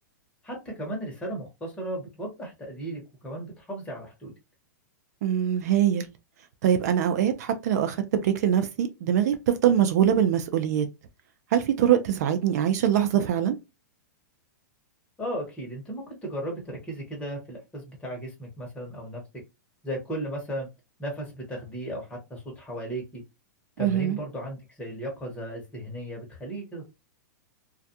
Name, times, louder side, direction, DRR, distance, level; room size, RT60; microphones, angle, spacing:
voice 1, 0.4-4.3 15.2-19.2 19.8-20.7 21.0-23.2 23.8-26.9, right 1 dB, 10° left, 1.0 m, -35 dB
voice 2, 5.2-6.1 6.6-10.9 11.5-13.5 23.8-24.2, right 10 dB, 60° right, 0.5 m, -23 dB
2.3 x 2.2 x 2.6 m
hypercardioid pair, 140°, 10 cm